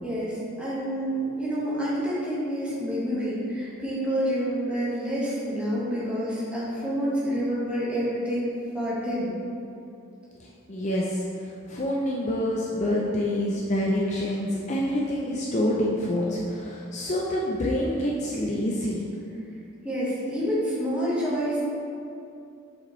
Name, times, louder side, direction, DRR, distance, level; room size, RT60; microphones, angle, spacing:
voice 1, 0.0-8.5 8.7-9.3 19.8-21.6, equal, 5° right, -9 dB, 1.4 m, -28 dB
voice 2, 10.7-11.2 11.7-19.1, left 1 dB, 35° left, -3 dB, 0.5 m, -27 dB
7.2 x 5.2 x 3.1 m, 2.6 s
head